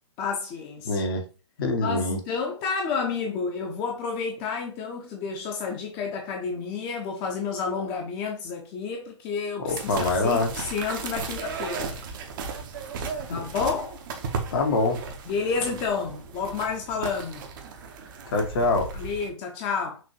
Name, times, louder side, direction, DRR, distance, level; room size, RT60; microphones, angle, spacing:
voice 1, 0.2-1.0 1.8-12.0 13.3-14.0 15.3-17.5 18.9-20.0, left 5 dB, 30° left, 0.9 m, -30 dB
voice 2, 0.8-1.2 1.6-2.2 9.6-10.5 13.3-13.4 14.5-15.0 18.3-18.9, left 2 dB, 50° left, 1.1 m, -24 dB
sound 1, 9.7-19.3, right 4 dB, 45° right, 0.8 m, -35 dB
6.1 x 2.6 x 2.9 m
figure-of-eight pair, 120°, 15 cm